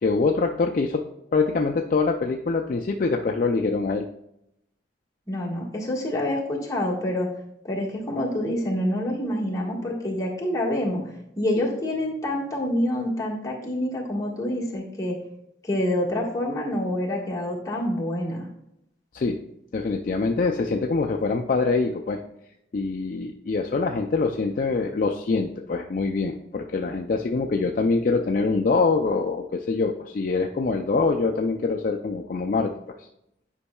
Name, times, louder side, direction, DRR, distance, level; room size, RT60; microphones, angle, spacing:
voice 1, 0.0-1.0 1.3-4.1 19.1-19.4 19.7-22.2 22.7-32.7, left 4 dB, 45° left, 2 dB, 0.4 m, -24 dB
voice 2, 5.3-7.3 7.6-11.0 11.4-15.1 15.6-18.5, left 1 dB, 20° left, -4 dB, 1.5 m, -27 dB
9.8 x 5.3 x 2.3 m, 0.79 s
head